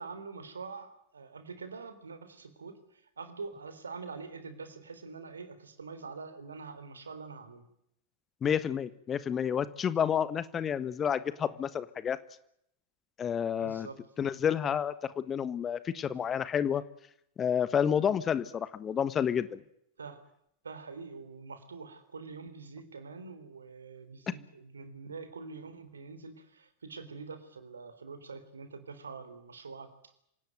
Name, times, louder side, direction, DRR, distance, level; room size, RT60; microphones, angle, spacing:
voice 1, 0.0-7.7 13.6-14.0 20.0-20.2 20.6-29.9, right 4 dB, 75° right, 12 dB, 3.6 m, -45 dB
voice 2, 8.4-12.2 13.2-13.9 14.2-16.8 17.4-19.6 24.3-24.4, left 8 dB, 25° left, 15 dB, 1.4 m, -30 dB
26.5 x 18.0 x 9.3 m, 0.74 s
figure-of-eight pair, 90°, 0 cm